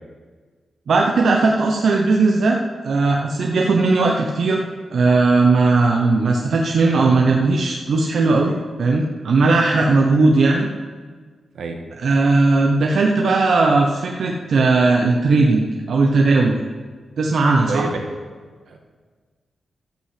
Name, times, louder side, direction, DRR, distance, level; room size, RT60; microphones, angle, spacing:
voice 1, 0.9-4.6 4.9-10.7 12.0-16.6 17.2-17.9, right 3 dB, 65° right, 0 dB, 0.9 m, -17 dB
voice 2, 17.7-18.1 18.7-18.8, right 4 dB, 85° right, 3 dB, 1.6 m, -27 dB
13.0 x 5.7 x 7.7 m, 1.5 s
wide cardioid pair, 140°, 0 cm